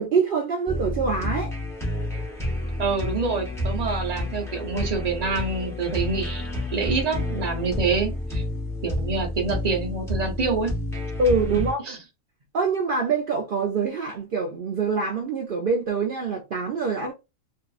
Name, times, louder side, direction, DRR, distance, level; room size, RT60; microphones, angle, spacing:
voice 1, 0.0-1.5 11.2-11.8 12.5-17.1, right 4 dB, 85° right, 0.4 m, -25 dB
sound 1, 0.7-11.7, left 1 dB, 5° left, 0.7 m, -30 dB
voice 2, 2.8-6.4 6.7-8.4 8.8-10.7 11.9-12.0, right 4 dB, 40° right, 0.6 m, -26 dB
2.6 x 2.4 x 2.3 m
omnidirectional pair, 1.5 m